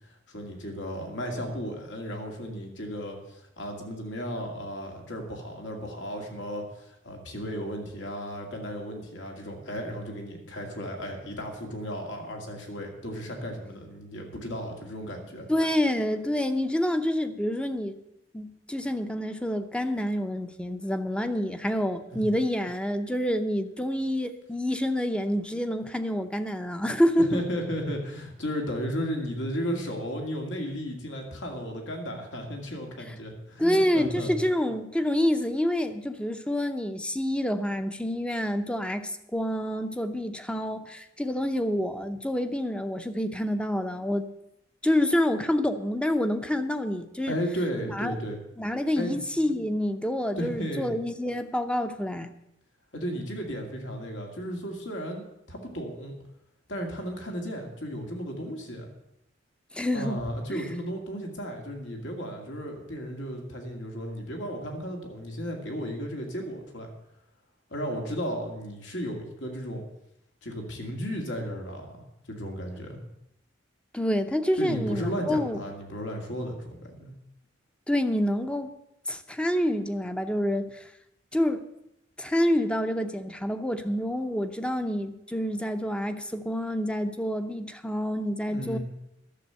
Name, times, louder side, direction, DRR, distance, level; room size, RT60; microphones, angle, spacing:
voice 1, 0.3-15.5 22.1-22.2 27.2-34.3 47.3-48.4 48.9-49.2 49.4-49.5 50.4-50.9 52.9-56.1 56.7-58.9 59.9-66.9 67.7-69.8 70.4-71.9 72.3-73.0 74.6-77.1 88.5-88.8, equal, 80° left, 2 dB, 2.4 m, -34 dB
voice 2, 15.5-18.0 18.3-27.3 33.6-44.3 44.8-47.4 47.8-48.1 48.6-52.3 59.7-60.2 60.5-60.6 73.9-75.6 77.9-78.7 79.1-80.9 81.3-81.6 82.2-88.8, left 1 dB, 5° left, 8 dB, 0.7 m, -27 dB
11.5 x 7.2 x 8.0 m, 0.83 s
head